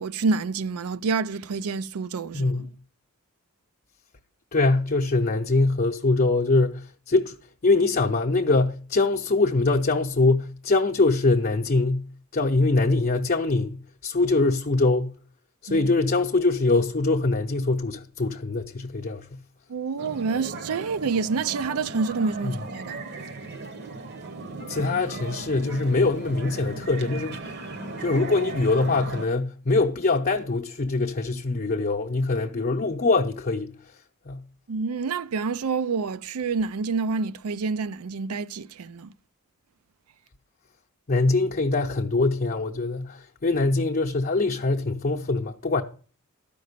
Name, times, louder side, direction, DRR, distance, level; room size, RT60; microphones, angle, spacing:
voice 1, 0.0-2.5 15.7-15.9 19.7-23.0 34.7-39.1, right 4 dB, 80° right, 0.5 m, -28 dB
voice 2, 2.3-2.7 4.5-7.4 7.6-15.1 15.6-19.4 22.4-22.5 24.7-27.4 28.0-33.7 34.3-34.4 41.1-45.8, left 3 dB, 40° left, 0.7 m, -23 dB
sound 1, 20.0-29.3, right 3 dB, 50° right, 0.9 m, -37 dB
12.5 x 5.3 x 6.7 m
head